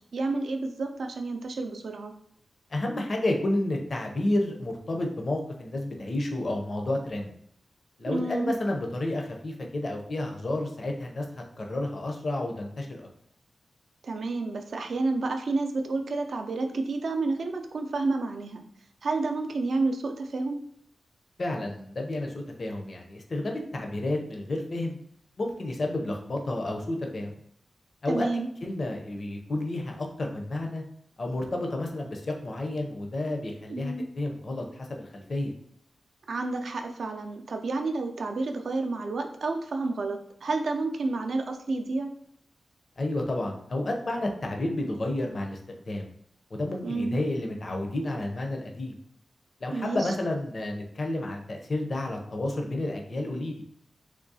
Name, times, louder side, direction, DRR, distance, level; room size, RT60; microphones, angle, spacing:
voice 1, 0.1-2.1 8.1-8.5 14.0-18.6 19.0-20.6 28.1-28.5 33.7-34.1 36.3-42.1 46.8-47.2 49.7-50.1, right 3 dB, 70° right, 5 dB, 0.4 m, -30 dB
voice 2, 2.7-7.3 8.0-11.2 11.6-13.1 21.4-25.0 25.4-27.3 28.0-28.3 28.6-30.8 31.2-35.5 43.0-45.6 45.9-46.1 46.5-48.9 49.6-53.6, left 1 dB, 50° left, 2 dB, 0.5 m, -31 dB
3.6 x 3.0 x 2.7 m, 0.68 s
wide cardioid pair, 115°, 0 cm